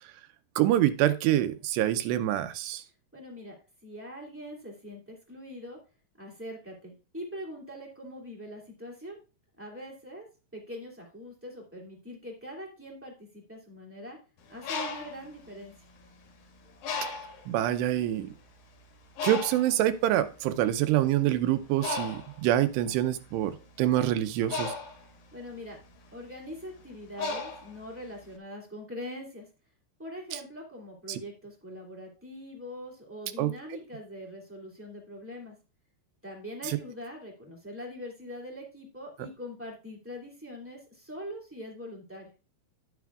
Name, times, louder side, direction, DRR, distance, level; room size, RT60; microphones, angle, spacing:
voice 1, 0.6-2.8 17.5-18.3 19.2-24.7 31.1-31.2 33.4-33.5 36.7-36.8, right 13 dB, 85° right, 2.8 m, -26 dB
voice 2, 3.1-3.5 3.8-5.8 6.2-9.2 9.6-10.3 10.5-14.2 14.5-15.7 25.3-25.8 26.1-29.5 30.0-35.5 36.2-42.3, left 1 dB, 5° right, 0.9 m, -42 dB
Bird, 14.4-16.3 16.8-17.5 18.2-18.3 18.6-28.3, left 3 dB, 65° left, 3.3 m, -37 dB
10.5 x 9.3 x 2.4 m
omnidirectional pair, 4.8 m